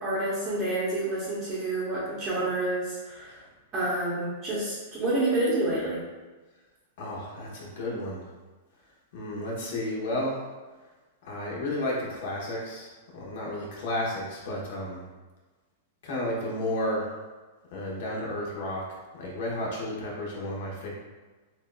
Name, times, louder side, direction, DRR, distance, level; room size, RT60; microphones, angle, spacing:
voice 1, 0.0-3.4 3.7-6.0, right 2 dB, 15° right, -9 dB, 0.9 m, -28 dB
voice 2, 7.0-8.3 9.1-10.5 11.2-15.0 16.0-17.1 17.7-18.8 19.2-20.9, left 1 dB, 50° left, -4 dB, 1.1 m, -32 dB
6.1 x 2.5 x 2.3 m, 1.3 s
supercardioid pair, 175°, 0 cm